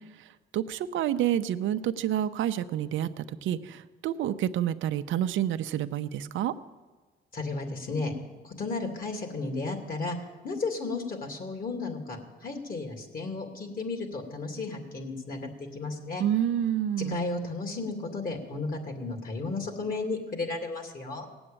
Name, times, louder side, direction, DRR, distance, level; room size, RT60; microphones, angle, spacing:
voice 1, 0.5-6.5 16.2-17.2, right 11 dB, 75° right, 10 dB, 0.7 m, -28 dB
voice 2, 7.3-8.1 8.4-10.2 10.4-16.2 17.0-21.3, left 3 dB, 45° left, 4 dB, 2.6 m, -34 dB
18.0 x 8.0 x 8.7 m, 1.3 s
cardioid pair, 90°, 20 cm